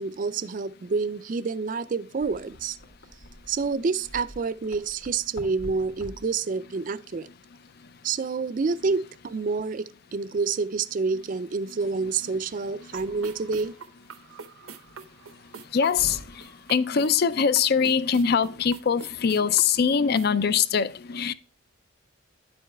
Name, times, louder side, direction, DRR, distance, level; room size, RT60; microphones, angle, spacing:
voice 1, 0.0-2.8 3.5-7.3 8.0-13.7, right 4 dB, 40° right, 0.4 m, -28 dB
sound 1, 2.2-19.5, equal, 85° left, 2.3 m, -50 dB
sound 2, 12.8-20.3, right 4 dB, 85° right, 0.7 m, -45 dB
voice 2, 15.7-16.2 16.7-21.3, left 6 dB, 50° left, 0.4 m, -22 dB
9.9 x 7.7 x 2.2 m
head